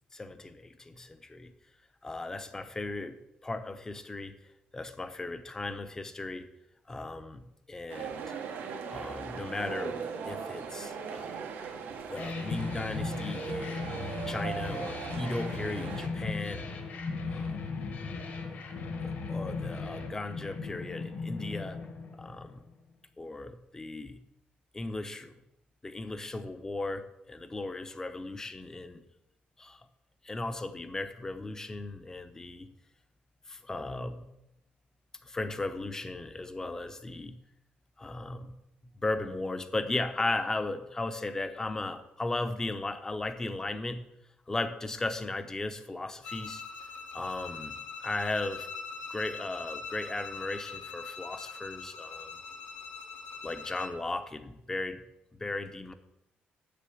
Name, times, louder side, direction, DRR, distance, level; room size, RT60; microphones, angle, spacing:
voice 1, 0.1-1.5 2.0-3.2 3.4-4.3 4.7-6.5 6.9-8.2 8.9-11.3 12.1-13.9 14.3-16.7 17.3-17.8 19.0-21.8 22.1-22.6 23.2-24.2 24.7-25.3 25.8-29.0 29.6-29.9 30.2-32.7 33.5-34.3 35.2-37.4 38.0-38.6 39.0-44.0 44.5-46.6 47.1-48.7 49.1-52.3 53.4-55.0 55.3-55.9, left 2 dB, 15° left, 9 dB, 0.8 m, -36 dB
sound 1, 7.9-16.1, right 6 dB, 90° right, 1.4 m, -39 dB
sound 2, 12.2-22.7, left 4 dB, 60° left, 1.8 m, -37 dB
Bowed string instrument, 46.2-54.0, left 5 dB, 85° left, 1.4 m, -42 dB
7.6 x 6.8 x 7.7 m, 0.87 s
cardioid pair, 135°, 3 cm